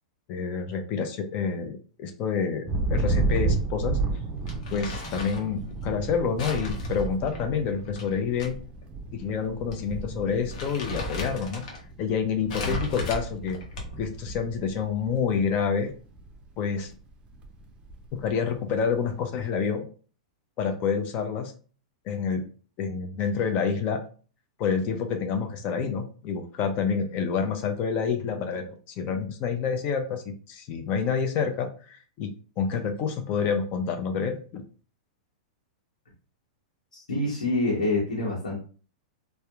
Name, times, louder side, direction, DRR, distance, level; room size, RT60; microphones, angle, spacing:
voice 1, 0.3-4.0 4.7-8.6 9.1-11.6 12.0-13.6 14.0-15.9 16.6-16.9 18.2-19.9 20.6-21.5 22.1-22.4 22.8-24.0 24.6-32.3 32.6-34.6, left 6 dB, 40° left, 5 dB, 0.4 m, -28 dB
Thunder, 2.7-15.5 15.9-16.4 16.8-18.3, right 3 dB, 25° right, 0.5 m, -32 dB
Crumpling crinkling, 4.5-5.5 6.4-8.5 8.8-8.9 9.7-9.9 10.2-11.8 12.5-14.1, left 2 dB, 60° left, 0.8 m, -35 dB
voice 2, 36.9-38.6, left 2 dB, 90° left, -4 dB, 0.9 m, -26 dB
2.8 x 2.1 x 2.3 m, 0.39 s
hypercardioid pair, 120°, 4 cm